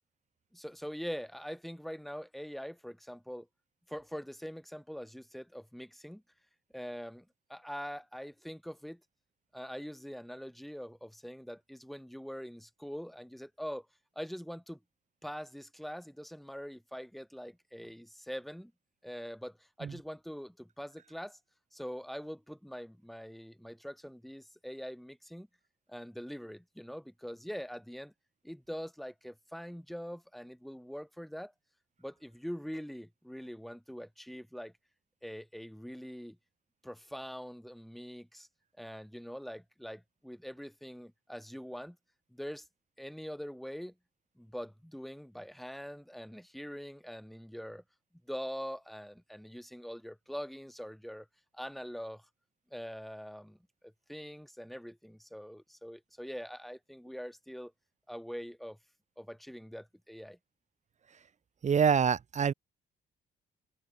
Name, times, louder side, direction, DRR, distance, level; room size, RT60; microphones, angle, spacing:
voice 1, 0.5-3.5 3.9-6.2 6.7-9.0 9.5-13.9 14.2-14.8 15.2-18.7 19.0-21.4 21.7-25.5 25.9-28.1 28.4-31.5 32.0-34.7 35.2-36.4 36.8-38.5 38.8-42.0 42.3-42.7 43.0-43.9 44.4-47.8 48.2-51.3 51.5-52.3 52.7-53.6 53.8-57.7 58.1-58.8 59.2-60.4, equal, ahead, 2.0 m, -43 dB
voice 2, 61.6-62.5, right 7 dB, 35° right, 0.7 m, -26 dB
cardioid pair, 90°, 20 cm